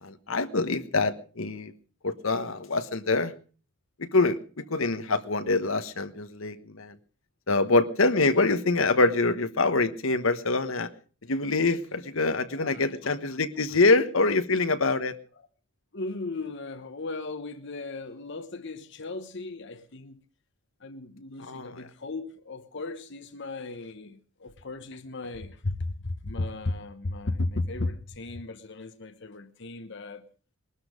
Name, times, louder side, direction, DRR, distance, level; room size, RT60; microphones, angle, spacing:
voice 1, 0.0-1.7 2.0-3.3 4.0-7.0 7.5-10.9 11.3-15.1 21.4-21.7, left 3 dB, 75° left, 1.3 m, -25 dB
voice 2, 12.6-13.2 13.7-13.8 14.3-14.4 15.9-20.2 20.8-30.2, left 2 dB, 60° left, 1.1 m, -36 dB
21.0 x 12.5 x 5.2 m
head